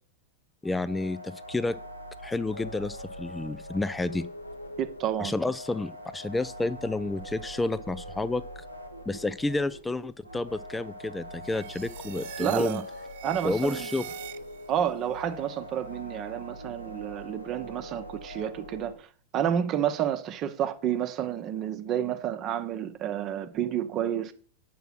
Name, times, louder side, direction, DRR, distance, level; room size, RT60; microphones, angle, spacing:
sound 1, 0.6-18.9, equal, 85° left, 1.4 m, -42 dB
voice 1, 0.6-1.8 2.2-4.3 5.2-8.4 9.1-12.8 13.4-14.0, left 2 dB, 10° left, 0.4 m, -30 dB
voice 2, 4.8-5.3 12.4-12.8 13.2-13.9 14.7-19.1 19.3-24.3, right 10 dB, 35° right, 0.9 m, -30 dB
sound 2, 11.4-14.8, right 14 dB, 50° right, 0.5 m, -43 dB
8.0 x 6.0 x 6.1 m
figure-of-eight pair, 90°, 0 cm